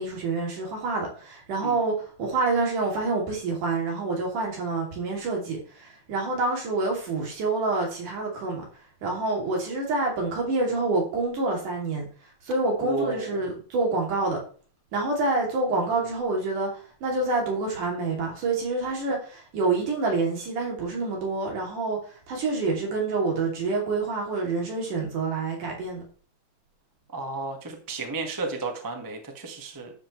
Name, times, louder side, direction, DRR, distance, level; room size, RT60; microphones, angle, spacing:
voice 1, 0.0-8.6 9.0-12.1 12.5-14.4 14.9-16.7 17.0-22.0 22.3-26.0, right 3 dB, 85° right, 4.4 m, -27 dB
voice 2, 12.8-13.4 27.1-29.9, right 3 dB, 15° right, 0.8 m, -33 dB
11.5 x 7.6 x 3.2 m
omnidirectional pair, 3.5 m